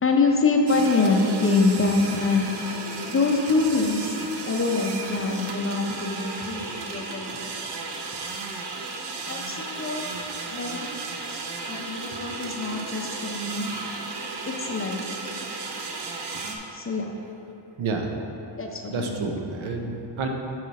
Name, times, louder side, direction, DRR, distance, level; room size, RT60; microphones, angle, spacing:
voice 1, 0.0-4.1 4.5-7.4 9.3-10.1 10.5-11.0 11.7-13.7 14.5-15.4 16.3-16.4 16.7-17.1 18.6-19.3, left 3 dB, 30° left, 2 dB, 0.5 m, -25 dB
sound 1, 0.7-16.6, right 3 dB, 60° right, 0.7 m, -34 dB
voice 2, 17.8-18.1 18.9-20.3, right 4 dB, 85° right, 3 dB, 0.9 m, -29 dB
7.6 x 4.9 x 4.1 m, 3.0 s
wide cardioid pair, 155°, 47 cm